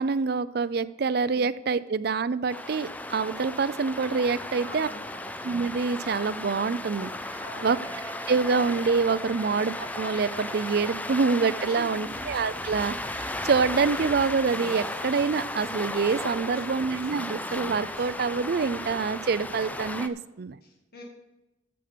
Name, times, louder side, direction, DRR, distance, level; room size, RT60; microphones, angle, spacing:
voice 1, 0.0-4.9 5.4-7.1 7.6-7.8 8.3-20.6, right 5 dB, 55° right, 15 dB, 0.4 m, -26 dB
voice 2, 1.0-1.5 4.5-5.3 7.4-7.9 9.3-9.5 11.7-12.3 16.4-17.0 20.9-21.0, equal, 50° left, 0 dB, 1.9 m, -45 dB
sound 1, 2.5-20.1, left 1 dB, 10° left, 0.4 m, -35 dB
Wind instrument woodwind instrument, 7.6-11.4, equal, 30° left, 4.0 m, -45 dB
sound 2, 12.0-18.1, equal, 90° left, 3.6 m, -48 dB
13.5 x 6.6 x 5.1 m, 1.0 s
head